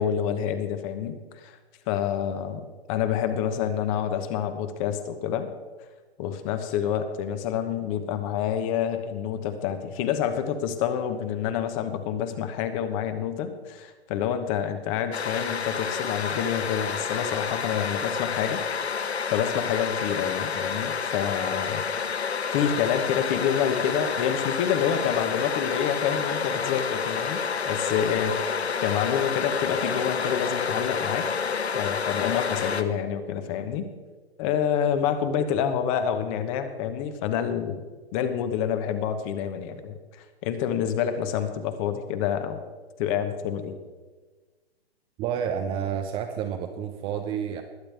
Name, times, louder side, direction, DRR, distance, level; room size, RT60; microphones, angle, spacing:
voice 1, 0.0-1.6 1.9-5.5 6.2-18.6 18.9-21.8 22.5-27.4 27.6-31.3 31.7-33.9 34.4-37.8 38.1-42.6 43.0-43.8, left 8 dB, 35° left, 9 dB, 1.2 m, -28 dB
sound 1, 15.1-32.8, left 6 dB, 85° left, 1.0 m, -29 dB
voice 2, 45.2-47.6, right 8 dB, 20° right, 6 dB, 0.5 m, -30 dB
21.0 x 8.7 x 3.5 m, 1.3 s
hypercardioid pair, 125°, 32 cm